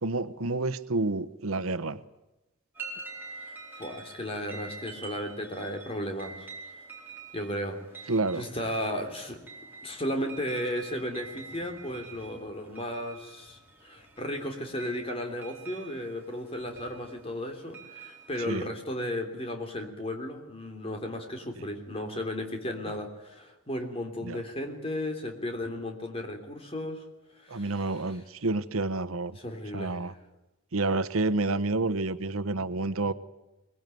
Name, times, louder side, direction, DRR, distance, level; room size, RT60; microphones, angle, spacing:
voice 1, 0.0-2.0 8.1-8.5 18.4-18.7 24.2-24.4 27.5-29.4 29.7-30.1 30.7-33.1, right 2 dB, 90° right, 1.1 m, -29 dB
sound 1, 2.7-18.5, right 4 dB, 10° right, 4.5 m, -47 dB
voice 2, 3.8-6.5 7.3-9.4 9.8-27.0 27.3-27.9 29.4-30.1, left 1 dB, 25° left, 3.3 m, -35 dB
23.0 x 20.5 x 9.3 m
head